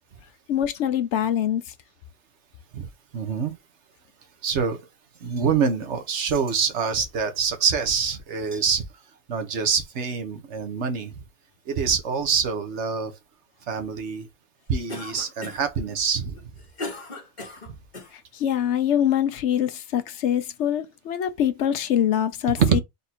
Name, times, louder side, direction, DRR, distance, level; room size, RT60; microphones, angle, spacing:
voice 1, 0.5-1.6 18.3-22.8, left 10 dB, 75° left, 1.0 m, -24 dB
voice 2, 2.7-3.5 4.4-4.9 5.2-8.8 9.3-11.2 11.7-13.2 13.7-14.3 14.7-16.4 17.7-17.8 22.5-22.8, right 6 dB, 80° right, 1.2 m, -25 dB
Cough, 14.9-15.8 16.4-18.1, left 2 dB, 40° left, 1.4 m, -37 dB
4.1 x 2.6 x 4.2 m
omnidirectional pair, 1.2 m